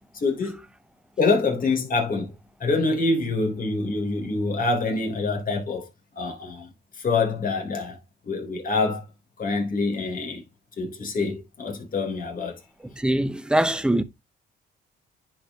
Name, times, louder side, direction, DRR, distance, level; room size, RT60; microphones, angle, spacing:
voice 1, 0.1-0.6 1.2-2.3 2.6-5.9 6.2-6.7 7.0-8.0 8.2-9.0 9.4-10.4 10.8-12.6, left 3 dB, 45° left, 3.5 m, -25 dB
voice 2, 13.0-14.0, right 1 dB, 5° right, 0.9 m, -22 dB
10.0 x 5.0 x 2.8 m
cardioid pair, 90°, 20 cm